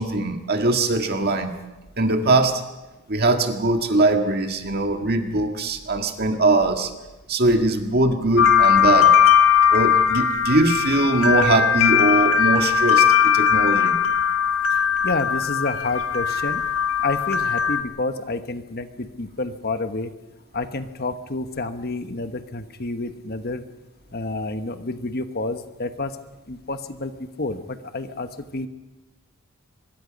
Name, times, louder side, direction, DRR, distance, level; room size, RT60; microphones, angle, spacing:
voice 1, 0.0-1.6 2.0-2.6 3.1-6.9 7.3-9.1 9.7-14.0, right 2 dB, 45° right, 5 dB, 1.8 m, -21 dB
sound 1, 8.4-17.8, left 8 dB, 70° left, 1.8 m, -19 dB
voice 2, 14.7-16.6 17.0-20.1 20.5-23.6 24.1-26.1 26.5-28.7, left 3 dB, 45° left, 9 dB, 1.1 m, -29 dB
24.5 x 21.5 x 5.3 m, 1.1 s
head